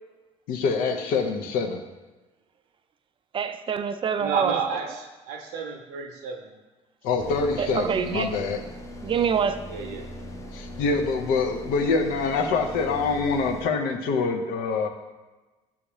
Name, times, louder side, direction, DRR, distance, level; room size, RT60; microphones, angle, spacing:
voice 1, 0.5-1.8 7.0-8.6 10.5-14.9, left 4 dB, 70° left, 4 dB, 0.6 m, -25 dB
voice 2, 3.3-4.5 7.6-8.3 9.0-9.6, right 7 dB, 35° right, 10 dB, 0.4 m, -25 dB
voice 3, 4.2-6.5 9.6-10.1, right 5 dB, 75° right, 3 dB, 0.7 m, -31 dB
sound 1, 7.2-13.7, left 1 dB, 20° left, 0.6 m, -40 dB
6.9 x 2.3 x 3.0 m, 1.2 s
hypercardioid pair, 65°, 16 cm